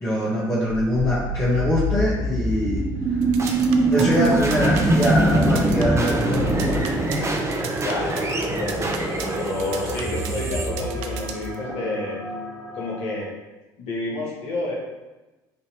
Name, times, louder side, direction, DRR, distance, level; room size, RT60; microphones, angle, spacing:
voice 1, 0.0-3.2 3.9-6.8 7.2-7.4, equal, 25° left, -8 dB, 0.9 m, -23 dB
sound 1, 1.2-11.7, right 2 dB, 25° right, 0.6 m, -23 dB
sound 2, 3.2-11.5, right 8 dB, 70° right, 0.4 m, -36 dB
sound 3, 4.8-7.3 8.2-13.2, left 1 dB, 5° right, 1.3 m, -38 dB
voice 2, 7.8-12.2 12.7-13.3 13.8-14.8, left 2 dB, 70° left, -4 dB, 1.2 m, -30 dB
3.3 x 2.5 x 2.9 m, 1.1 s
hypercardioid pair, 70°, 11 cm